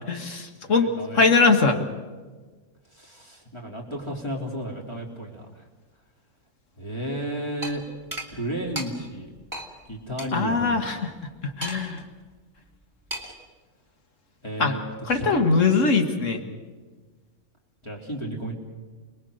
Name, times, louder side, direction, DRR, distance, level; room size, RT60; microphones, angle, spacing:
voice 1, 0.1-1.8 10.3-11.1 11.6-12.0 14.6-14.7 15.1-16.4, left 4 dB, 85° left, 5 dB, 2.0 m, -21 dB
voice 2, 0.6-1.4 2.9-5.6 6.8-7.8 8.3-9.3 9.9-10.8 14.4-16.0 17.8-18.5, right 1 dB, 20° left, -2 dB, 3.4 m, -33 dB
sound 1, 7.6-7.7 8.1-8.3 8.7-8.9 9.5-9.7 10.2-10.3 11.6-12.0 13.1-13.4, equal, 15° right, 2.6 m, -33 dB
28.5 x 20.0 x 6.5 m, 1.4 s
omnidirectional pair, 1.3 m